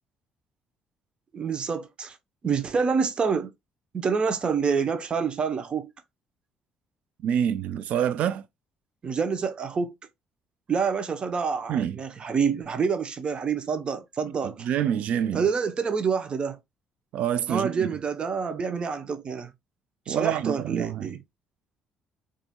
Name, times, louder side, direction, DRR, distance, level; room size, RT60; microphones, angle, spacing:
voice 1, 1.3-2.2 2.4-3.5 3.9-5.9 9.0-9.9 10.7-14.7 15.3-16.6 17.5-19.5 20.1-21.2, right 6 dB, 45° right, 0.8 m, -27 dB
voice 2, 7.2-8.4 11.7-12.0 14.6-15.4 17.1-17.9 20.1-21.1, right 9 dB, 70° right, 0.4 m, -26 dB
4.2 x 2.7 x 2.2 m
supercardioid pair, 65°, 2 cm